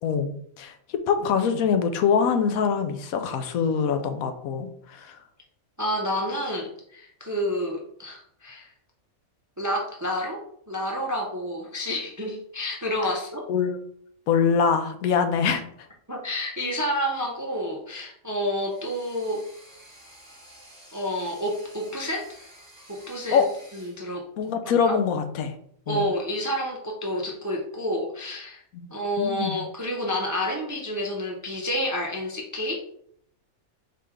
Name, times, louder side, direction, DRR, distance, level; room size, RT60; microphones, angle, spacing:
voice 1, 0.0-5.2 13.5-13.8 14.3-15.6 23.3-23.5 24.4-25.5 25.9-26.0 28.7-28.9 29.2-29.6, left 6 dB, 85° left, 8 dB, 1.1 m, -24 dB
voice 2, 5.8-8.7 9.6-13.5 16.1-19.4 20.9-22.5 22.9-23.4 23.7-24.2 24.8-24.9 25.9-28.6 28.9-32.9, equal, 30° right, 0 dB, 0.3 m, -29 dB
sound 1, 18.5-24.0, equal, 5° left, 1.3 m, -51 dB
4.5 x 3.2 x 3.6 m, 0.65 s
omnidirectional pair, 1.4 m